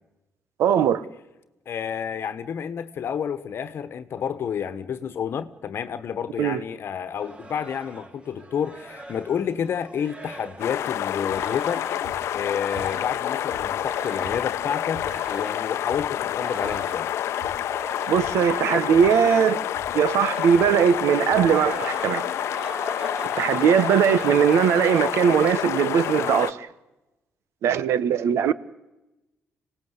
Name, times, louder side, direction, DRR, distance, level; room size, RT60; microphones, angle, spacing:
voice 1, 0.6-1.0 6.4-6.6 18.1-19.7 19.9-22.2 23.4-26.7 27.6-28.5, right 8 dB, 85° right, 1.1 m, -20 dB
voice 2, 1.7-11.9 12.3-17.1, left 8 dB, 60° left, 1.2 m, -30 dB
sound 1, 7.2-13.3 13.7-14.7 15.0-15.7 16.2-18.6 18.8-19.7 20.1-21.0 21.3-25.5, right 2 dB, 25° right, 2.1 m, -41 dB
sound 2, 10.6-26.5, left 11 dB, 80° left, 0.7 m, -28 dB
sound 3, 11.3-11.7 12.0-13.2 13.5-15.4 15.9-16.3 16.6-17.1 17.4-17.8 18.2-18.6 18.9-19.4 19.7-20.1 20.5-21.1 21.3-21.7 22.4-22.5 22.7-22.8, right 3 dB, 60° right, 5.2 m, -45 dB
25.5 x 18.0 x 8.1 m
cardioid pair, 100°, 5 cm